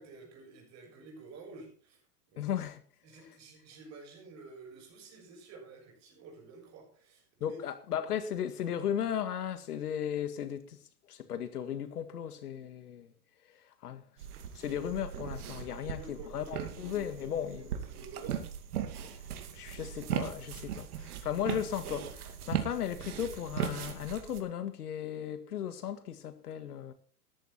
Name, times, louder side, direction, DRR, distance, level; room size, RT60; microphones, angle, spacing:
voice 1, 0.0-2.0 2.3-2.5 3.0-7.6 15.6-16.9 17.2-18.4, right 3 dB, 35° right, 6.7 m, -51 dB
voice 2, 2.4-2.8 7.4-10.8 11.1-13.1 13.5-14.0 14.6-17.7 19.5-26.9, left 9 dB, 85° left, 1.9 m, -36 dB
sound 1, 14.2-24.4, right 9 dB, 75° right, 2.4 m, -38 dB
13.5 x 11.0 x 4.4 m
hypercardioid pair, 125°, 45 cm